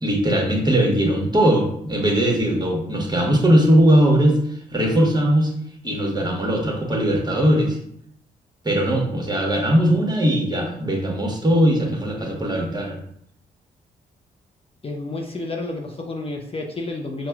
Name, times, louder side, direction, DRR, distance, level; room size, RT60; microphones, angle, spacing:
voice 1, 0.0-5.5 5.8-7.8 8.6-13.0, equal, 20° right, -1 dB, 1.2 m, -19 dB
voice 2, 14.8-17.3, left 2 dB, 30° left, 0 dB, 0.6 m, -30 dB
5.7 x 2.2 x 2.3 m, 0.70 s
hypercardioid pair, 40°, 21 cm